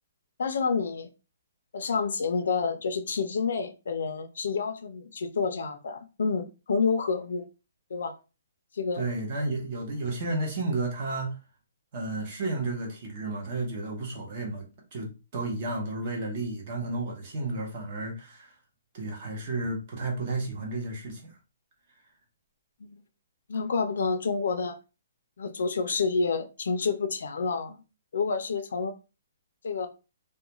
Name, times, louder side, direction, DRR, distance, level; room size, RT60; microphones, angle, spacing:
voice 1, 0.4-1.1 1.7-7.5 7.9-8.1 8.7-9.1 22.8-23.0 23.5-24.8 25.4-27.8 28.1-28.9 29.6-29.9, left 5 dB, 65° left, 0.4 m, -29 dB
voice 2, 9.0-11.4 11.9-14.7 14.9-18.5 18.9-21.4, right 2 dB, 30° right, 0.8 m, -32 dB
2.3 x 2.2 x 2.9 m
hypercardioid pair, 170°, 0 cm